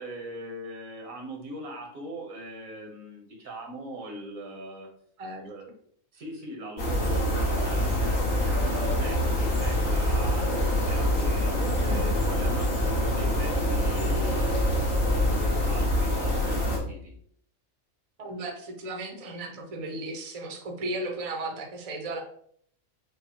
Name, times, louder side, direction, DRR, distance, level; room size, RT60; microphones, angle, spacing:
voice 1, 0.0-4.9 5.4-5.8 6.1-10.5 10.9-14.6 15.2-17.1, right 1 dB, 80° right, 1 dB, 1.4 m, -40 dB
sound 1, 6.8-16.8, equal, 70° left, 1.5 m, -25 dB
voice 2, 11.8-12.1 18.2-22.2, right 2 dB, 35° right, 1 dB, 0.6 m, -35 dB
5.9 x 2.2 x 2.8 m, 0.63 s
omnidirectional pair, 1.4 m